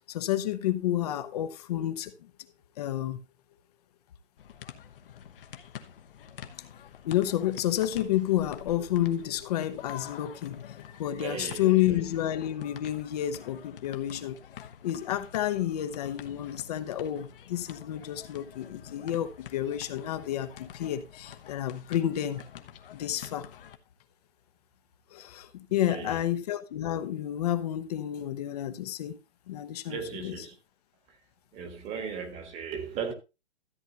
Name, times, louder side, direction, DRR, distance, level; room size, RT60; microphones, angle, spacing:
voice 1, 0.1-2.1 2.8-3.2 7.0-10.6 10.9-14.4 14.8-22.4 22.9-23.5 25.1-29.2 29.5-30.3, left 12 dB, 35° left, 0.9 m, -30 dB
sound 1, 4.4-23.8, left 9 dB, 55° left, 1.2 m, -47 dB
voice 2, 11.1-12.0 25.7-26.2 29.9-30.5 31.5-33.1, right 6 dB, 20° right, 1.5 m, -37 dB
13.5 x 8.1 x 2.9 m
hypercardioid pair, 155°, 34 cm